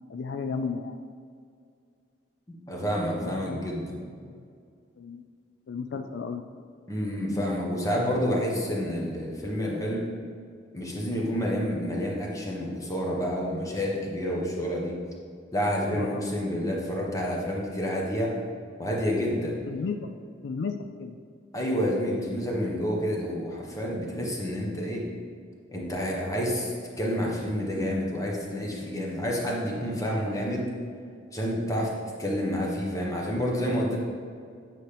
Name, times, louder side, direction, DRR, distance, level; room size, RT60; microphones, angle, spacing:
voice 1, 0.1-1.0 3.2-3.6 4.2-4.4 5.0-5.2 5.7-6.4 15.8-16.2 19.7-21.2 33.8-34.0, left 5 dB, 70° left, 7 dB, 0.3 m, -34 dB
voice 2, 2.7-4.0 6.9-10.1 10.7-15.0 15.5-18.3 18.8-19.5 21.5-25.1 25.7-30.7 31.3-31.9 32.2-34.0, equal, 20° left, -2 dB, 1.2 m, -29 dB
9.1 x 5.8 x 3.4 m, 2.2 s
head